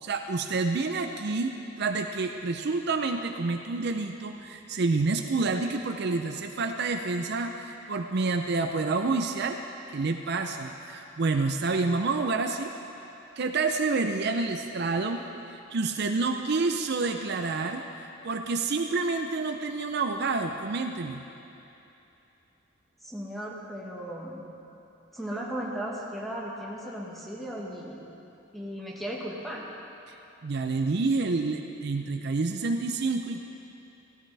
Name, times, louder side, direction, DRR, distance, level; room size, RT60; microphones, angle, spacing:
voice 1, 0.0-9.6 9.9-12.7 13.4-17.8 18.2-21.2 30.1-30.2 30.4-33.4, right 3 dB, 50° right, 5 dB, 0.5 m, -28 dB
voice 2, 23.0-24.4 25.1-28.0 28.5-29.6, equal, ahead, -4 dB, 1.5 m, -36 dB
16.5 x 13.5 x 3.4 m, 2.9 s
head